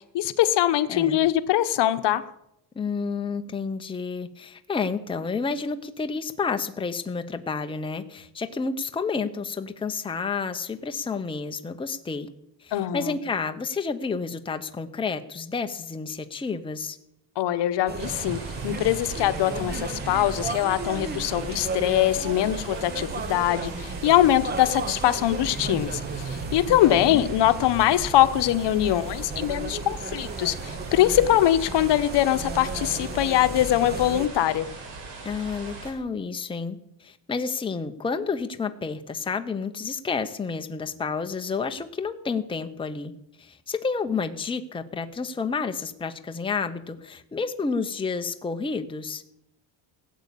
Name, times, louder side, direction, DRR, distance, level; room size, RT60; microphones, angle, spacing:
voice 1, 0.0-2.2 12.7-13.2 17.4-34.7, left 13 dB, 65° left, 11 dB, 1.0 m, -22 dB
voice 2, 0.9-1.2 2.7-12.3 12.6-17.0 26.7-27.2 35.2-43.1 43.4-49.2, left 5 dB, 10° left, 7 dB, 0.8 m, -30 dB
sound 1, 17.9-34.3, right 4 dB, 20° right, 0.7 m, -34 dB
sound 2, 18.0-35.9, right 3 dB, 70° right, 4.9 m, -41 dB
16.5 x 8.4 x 8.4 m, 0.81 s
cardioid pair, 140°, 45 cm